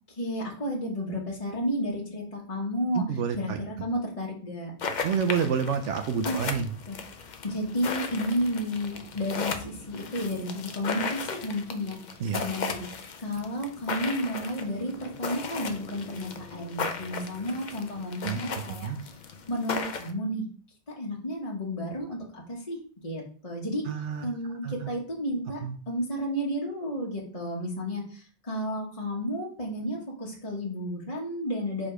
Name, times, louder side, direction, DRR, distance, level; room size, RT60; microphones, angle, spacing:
voice 1, 0.1-3.0 3.4-4.7 6.2-6.4 6.9-7.0 7.4-12.9 13.2-19.2 19.5-20.4 20.9-22.8 23.0-23.8 24.2-25.6 25.9-31.9, equal, 30° left, -3 dB, 1.3 m, -32 dB
voice 2, 2.9-3.6 5.0-6.7 12.2-12.5 18.2-18.4 18.8-19.0 23.9-24.2 24.6-24.7 25.6-25.8, right 7 dB, 80° right, 7 dB, 1.0 m, -28 dB
sound 1, 4.8-20.1, left 5 dB, 45° left, 0.7 m, -36 dB
5.0 x 4.2 x 4.9 m, 0.43 s
omnidirectional pair, 1.2 m